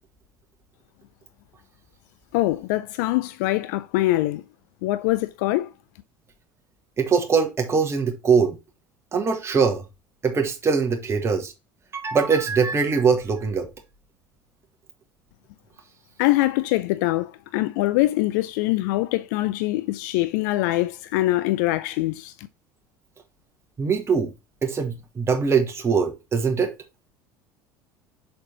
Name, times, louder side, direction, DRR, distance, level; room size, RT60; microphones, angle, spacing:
voice 1, 2.3-4.4 4.8-5.7 16.2-22.5, left 17 dB, 60° left, 0.5 m, -23 dB
voice 2, 7.0-8.6 9.1-9.8 10.2-11.5 11.9-13.7 23.8-24.3 24.6-26.7, right 5 dB, 25° right, 1.4 m, -22 dB
6.6 x 4.5 x 4.0 m
figure-of-eight pair, 65°, 11 cm